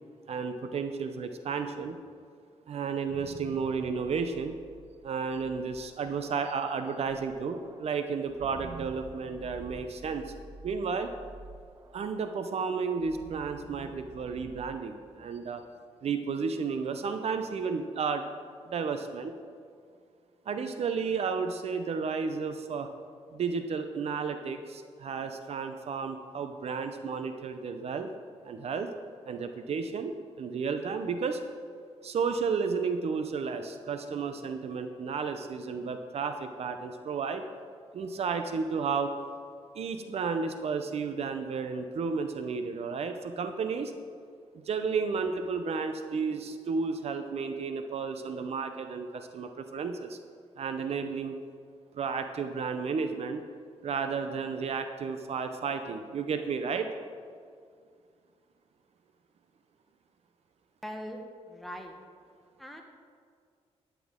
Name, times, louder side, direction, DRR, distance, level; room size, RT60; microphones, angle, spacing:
voice 1, 0.3-2.0 2.7-4.6 5.0-10.3 10.6-11.1 11.9-15.6 16.0-18.3 18.7-19.3 20.5-22.9 23.3-28.1 28.4-28.9 29.3-31.4 32.0-37.4 37.9-39.1 39.7-43.9 44.6-50.2 50.6-51.4 51.9-53.4 53.8-56.9, right 5 dB, 65° right, 7 dB, 0.6 m, -32 dB
sound 1, 3.1-15.7, right 4 dB, 30° right, 0.6 m, -50 dB
voice 2, 60.8-61.9 62.6-62.8, equal, ahead, 2 dB, 1.2 m, -41 dB
12.0 x 8.4 x 3.7 m, 2.2 s
cardioid pair, 100°, 11 cm